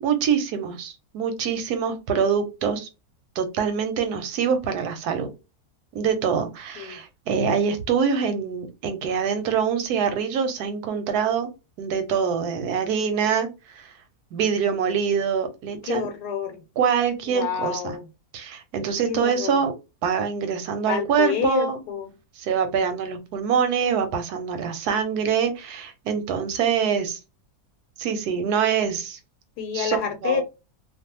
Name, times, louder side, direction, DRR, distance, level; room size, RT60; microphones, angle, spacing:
voice 1, 0.0-2.9 3.4-5.3 5.9-11.5 11.8-13.5 13.7-13.9 14.3-16.1 16.8-17.8 18.3-19.7 20.0-21.8 22.4-27.2 28.0-29.2 29.7-30.0 30.2-30.4, right 7 dB, 80° right, 1.2 m, -24 dB
voice 2, 15.8-16.6 17.3-18.1 19.0-19.6 20.9-22.1 29.6-30.4, left 7 dB, 90° left, 1.2 m, -28 dB
2.6 x 2.3 x 2.8 m
omnidirectional pair, 1.7 m